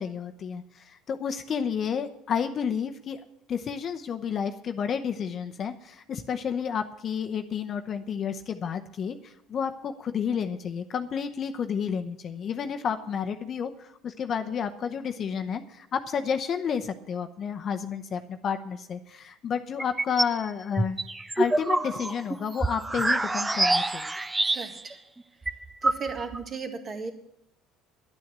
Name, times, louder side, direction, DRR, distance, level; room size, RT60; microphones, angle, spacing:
voice 1, 0.0-3.2 3.5-21.0 21.4-24.1, left 7 dB, 40° left, 7 dB, 0.8 m, -31 dB
sound 1, 19.8-20.4 20.8-24.9 25.2-25.3 25.5-26.4, right 2 dB, 10° right, 0.5 m, -26 dB
voice 2, 24.5-25.0 25.8-27.1, right 5 dB, 35° right, 6 dB, 1.9 m, -35 dB
11.0 x 9.6 x 7.4 m, 0.75 s
cardioid pair, 115°, 0 cm